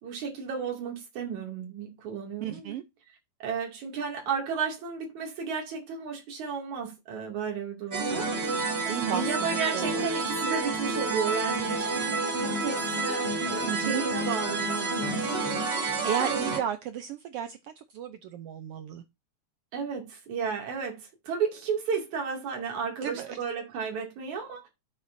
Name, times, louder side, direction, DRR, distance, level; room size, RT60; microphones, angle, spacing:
voice 1, 0.0-2.8 3.4-8.3 9.1-15.1 19.7-24.7, right 6 dB, 70° right, 3.9 m, -33 dB
voice 2, 2.4-2.8 8.9-10.2 13.6-14.1 15.6-19.0 23.0-23.4, right 9 dB, 90° right, 1.3 m, -34 dB
sound 1, 7.9-16.6, right 3 dB, 30° right, 1.1 m, -29 dB
9.8 x 7.2 x 2.6 m
omnidirectional pair, 3.5 m